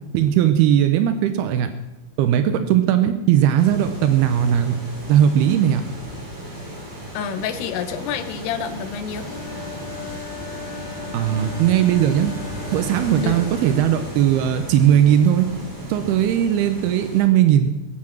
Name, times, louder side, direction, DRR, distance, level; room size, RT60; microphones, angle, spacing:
voice 1, 0.1-1.7 2.2-4.8 5.1-5.8 11.1-12.3 12.7-15.5 15.9-17.7, right 10 dB, 85° right, 8 dB, 2.7 m, -18 dB
sound 1, 3.6-17.2, equal, 55° right, 7.9 m, -34 dB
voice 2, 7.1-9.3 13.2-13.4, left 7 dB, 90° left, 10 dB, 3.2 m, -28 dB
Wind instrument woodwind instrument, 9.2-13.9, left 7 dB, 70° left, 3.3 m, -38 dB
21.5 x 8.6 x 6.0 m, 0.99 s
omnidirectional pair, 4.6 m